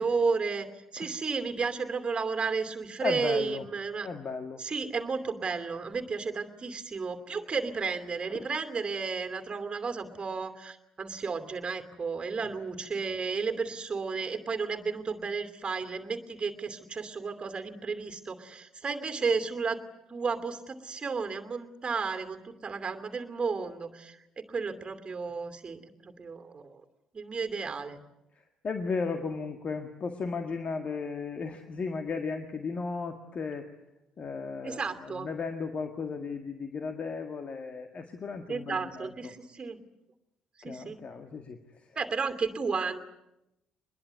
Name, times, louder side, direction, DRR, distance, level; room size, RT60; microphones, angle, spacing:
voice 1, 0.0-4.1 4.6-19.8 20.1-26.8 27.1-28.0 34.6-35.3 38.5-39.8 40.6-41.0 42.0-43.0, right 5 dB, 30° right, 8 dB, 2.7 m, -33 dB
voice 2, 3.0-3.6 4.0-4.6 28.6-33.7 34.2-34.8 35.2-39.1 40.6-41.6, left 4 dB, 40° left, 7 dB, 1.9 m, -35 dB
23.5 x 21.5 x 9.5 m, 0.88 s
figure-of-eight pair, 50°, 3 cm